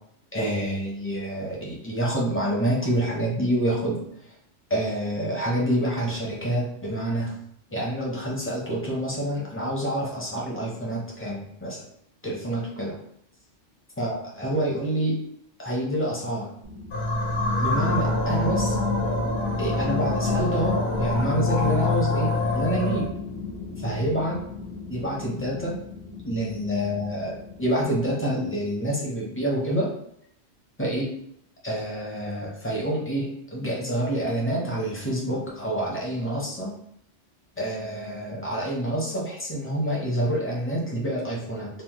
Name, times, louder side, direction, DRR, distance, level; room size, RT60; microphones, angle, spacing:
voice 1, 0.3-4.0 4.7-7.4 7.7-11.9 12.2-13.0 14.0-15.2 15.6-16.5 17.6-18.8 19.6-23.0 23.8-24.4 24.9-25.7 26.2-29.9 30.8-31.1 31.6-36.7 37.6-41.7, right 1 dB, 15° left, -5 dB, 0.5 m, -27 dB
sound 1, 16.6-28.7, left 4 dB, 40° right, 0.5 m, -33 dB
sound 2, 16.9-23.1, left 2 dB, 65° left, 0.9 m, -26 dB
3.2 x 2.0 x 2.9 m, 0.73 s
omnidirectional pair, 1.2 m